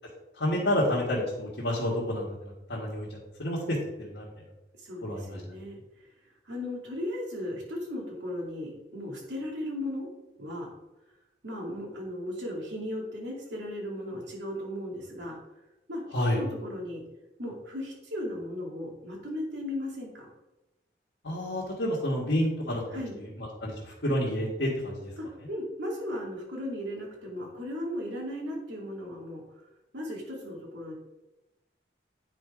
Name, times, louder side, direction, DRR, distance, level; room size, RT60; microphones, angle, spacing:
voice 1, 0.4-3.1 3.4-4.3 5.0-5.4 16.1-16.4 21.2-22.8 23.2-25.1, left 1 dB, 80° left, -6 dB, 1.7 m, -29 dB
voice 2, 4.8-6.1 6.4-10.1 10.4-10.7 11.4-15.4 15.9-16.0 16.3-17.0 17.4-20.3 22.9-23.2 25.2-29.4 29.9-30.9, left 1 dB, 85° right, -2 dB, 2.4 m, -36 dB
9.1 x 4.4 x 4.9 m, 1.0 s
head